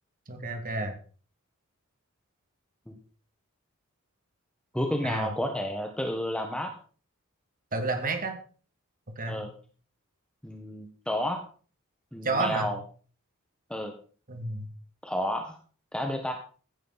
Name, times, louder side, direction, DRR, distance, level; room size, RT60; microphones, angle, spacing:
voice 1, 0.3-0.9 5.0-5.3 7.7-8.4 9.2-9.4 12.2-12.7 14.3-14.7, right 3 dB, 40° right, 5 dB, 2.4 m, -30 dB
voice 2, 4.7-6.7 9.3-9.5 10.4-11.4 12.1-12.8 13.7-13.9 15.0-15.6 15.9-16.3, equal, 5° left, 3 dB, 1.4 m, -31 dB
15.5 x 10.5 x 4.1 m, 0.41 s
head